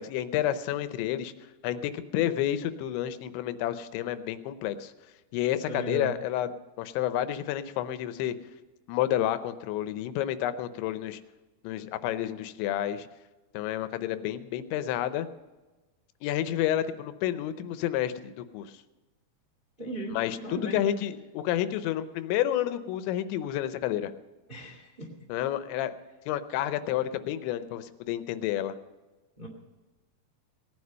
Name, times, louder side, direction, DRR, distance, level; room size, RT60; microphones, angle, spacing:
voice 1, 0.0-1.3 1.6-4.9 5.3-6.5 6.8-8.3 8.9-11.2 11.6-13.1 13.5-15.3 16.2-18.7 20.1-24.2 25.3-25.9 26.3-28.8, left 12 dB, 85° left, 12 dB, 3.1 m, -30 dB
voice 2, 5.7-6.1 19.8-20.1 20.4-20.8 24.5-25.1 29.4-29.5, right 2 dB, 35° right, 0 dB, 0.8 m, -36 dB
18.0 x 9.6 x 5.4 m, 1.2 s
omnidirectional pair, 5.1 m